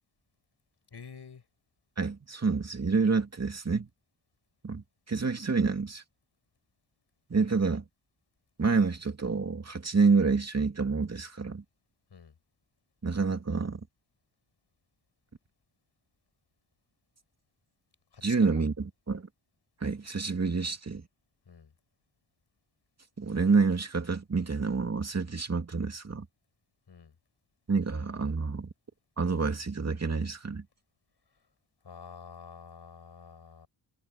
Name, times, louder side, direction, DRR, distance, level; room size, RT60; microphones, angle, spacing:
voice 1, 0.9-1.4 12.1-12.3 18.1-18.7 21.5-21.7 26.9-27.1 31.8-33.7, left 6 dB, 65° left, 6.4 m, -48 dB
voice 2, 2.0-3.9 4.6-6.0 7.3-7.8 8.6-11.6 13.0-13.8 18.2-19.3 19.8-21.0 23.2-26.3 27.7-28.7 29.2-30.6, right 4 dB, 35° right, 2.5 m, -28 dB
cardioid pair, 80°, 44 cm